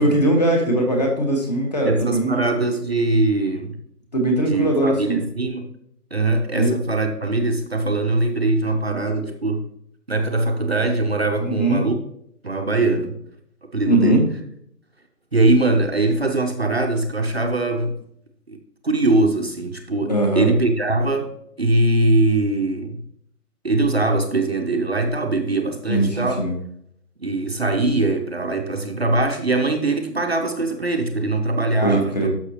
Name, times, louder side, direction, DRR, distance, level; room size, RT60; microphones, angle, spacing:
voice 1, 0.0-2.4 4.1-5.2 6.5-6.7 11.4-11.8 13.9-14.2 20.1-20.5 25.9-26.5 31.8-32.3, right 1 dB, 25° left, 2 dB, 1.4 m, -20 dB
voice 2, 1.8-3.8 4.5-5.7 6.1-9.6 10.1-11.9 12.4-13.2 13.7-14.2 15.3-18.0 18.5-18.6 18.8-21.3 21.6-23.0 23.6-26.4 27.2-32.3, right 2 dB, 40° right, 3 dB, 0.8 m, -21 dB
12.0 x 6.1 x 2.9 m, 0.72 s
figure-of-eight pair, 165°, 47 cm